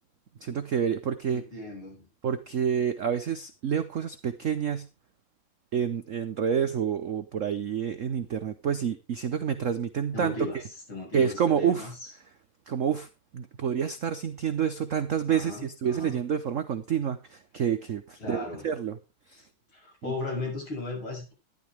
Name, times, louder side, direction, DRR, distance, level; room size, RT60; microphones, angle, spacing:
voice 1, 0.4-1.4 2.2-4.9 5.7-10.3 11.1-11.9 12.7-13.1 13.3-19.0 19.3-19.5 20.0-20.1, right 8 dB, 65° right, 0.7 m, -28 dB
voice 2, 1.3-2.1 10.1-12.1 15.3-16.2 18.2-18.7 19.7-21.3, left 2 dB, 70° left, 7.2 m, -36 dB
12.0 x 11.5 x 3.4 m
omnidirectional pair, 2.3 m